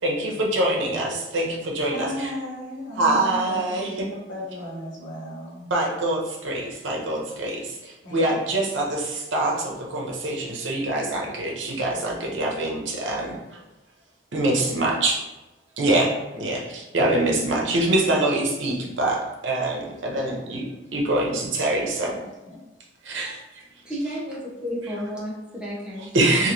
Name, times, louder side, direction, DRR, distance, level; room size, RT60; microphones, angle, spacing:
voice 1, 0.0-2.3 3.0-4.1 5.7-13.6 14.3-15.2 15.8-16.1 16.3-19.2 19.4-22.1 23.0-23.4 26.1-26.5, right 2 dB, 80° right, -1 dB, 0.7 m, -24 dB
voice 2, 1.9-5.7 8.0-8.6 22.1-22.2 22.5-22.6, left 1 dB, 80° left, -6 dB, 1.2 m, -35 dB
voice 3, 23.6-26.1 26.4-26.5, equal, 5° right, -7 dB, 0.8 m, -32 dB
3.0 x 2.6 x 2.6 m, 1.1 s
head